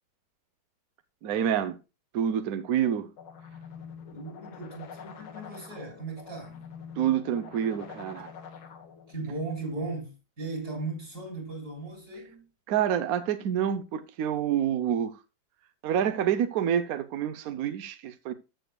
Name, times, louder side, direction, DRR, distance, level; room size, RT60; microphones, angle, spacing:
voice 1, 1.2-1.8 2.1-3.1 7.0-8.3 12.7-15.1 15.8-18.3, right 9 dB, 65° right, 0.9 m, -27 dB
sound 1, 3.2-9.2, left 6 dB, 85° left, 2.0 m, -46 dB
voice 2, 4.1-6.6 9.1-12.5, right 3 dB, 45° right, 4.0 m, -37 dB
14.0 x 6.9 x 2.2 m
omnidirectional pair, 2.2 m